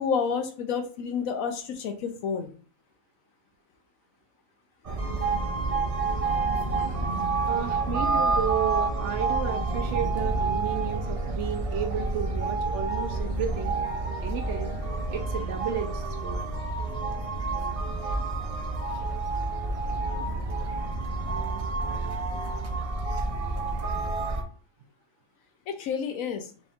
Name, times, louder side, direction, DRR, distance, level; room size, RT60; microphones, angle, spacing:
voice 1, 0.0-2.5 23.1-23.2 25.7-26.5, left 6 dB, 75° left, 7 dB, 1.1 m, -30 dB
sound 1, 4.9-24.4, right 3 dB, 45° right, 0.4 m, -29 dB
voice 2, 7.5-13.8 14.2-14.7 15.1-16.4, right 8 dB, 65° right, 5 dB, 0.8 m, -32 dB
4.7 x 2.6 x 3.4 m, 0.39 s
omnidirectional pair, 1.5 m